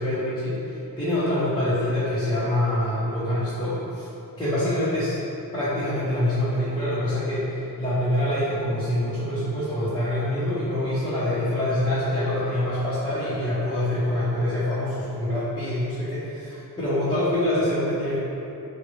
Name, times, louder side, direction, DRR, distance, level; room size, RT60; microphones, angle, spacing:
voice 1, 0.0-4.1 4.4-5.2 5.5-18.2, left 1 dB, 15° left, -14 dB, 0.7 m, -25 dB
3.8 x 2.1 x 3.0 m, 2.9 s
wide cardioid pair, 125°, 38 cm